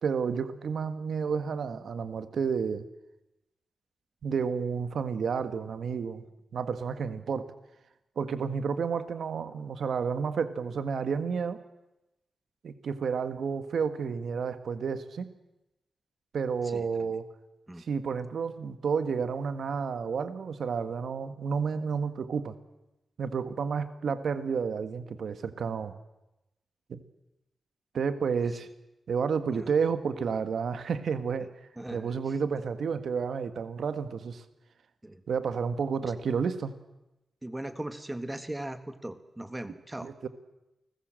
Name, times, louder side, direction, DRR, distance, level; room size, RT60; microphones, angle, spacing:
voice 1, 0.0-2.9 4.2-6.2 6.5-7.5 8.1-11.6 12.6-15.3 16.3-17.3 17.8-22.6 23.2-26.0 26.9-27.0 27.9-28.7 29.1-31.5 31.9-34.4 35.3-36.7 40.0-40.3, right 6 dB, 65° right, 11 dB, 1.6 m, -31 dB
voice 2, 16.6-17.1 17.7-17.9 29.5-29.7 31.8-32.1 35.0-35.2 37.4-40.1, right 1 dB, 10° right, 10 dB, 1.7 m, -39 dB
29.5 x 20.0 x 7.7 m, 0.96 s
wide cardioid pair, 170°, 0 cm